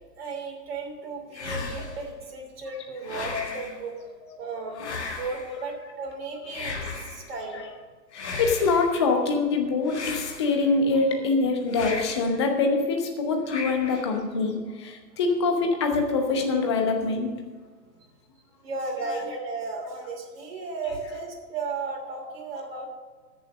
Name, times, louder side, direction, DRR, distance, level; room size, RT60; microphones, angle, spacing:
voice 1, 0.1-3.9 4.4-7.6 17.9-18.1 18.6-22.9, right 3 dB, 35° right, 0 dB, 2.9 m, -35 dB
sound 1, 1.3-2.1 3.0-3.8 4.8-5.6 6.5-7.3 8.1-9.0 9.9-10.8 11.7-12.4 13.5-14.2, left 3 dB, 40° left, 1.7 m, -35 dB
voice 2, 8.1-17.3 19.1-19.2 20.9-21.2 22.5-22.6, left 3 dB, 15° left, 3 dB, 0.9 m, -25 dB
14.0 x 7.0 x 6.4 m, 1.4 s
figure-of-eight pair, 135°, 50 cm